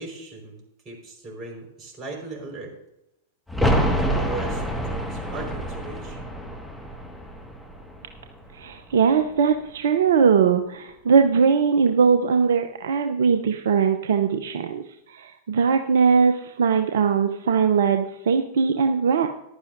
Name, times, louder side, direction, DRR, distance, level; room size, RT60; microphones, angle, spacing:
voice 1, 0.0-2.7 4.0-6.2, right 3 dB, 30° right, 1 dB, 4.6 m, -38 dB
sound 1, 3.5-9.1 9.3-9.4, equal, ahead, 1.7 m, -27 dB
voice 2, 8.6-14.8 15.1-19.3, right 6 dB, 65° right, 6 dB, 0.7 m, -20 dB
15.0 x 11.5 x 2.6 m, 0.86 s
figure-of-eight pair, 95°, 0 cm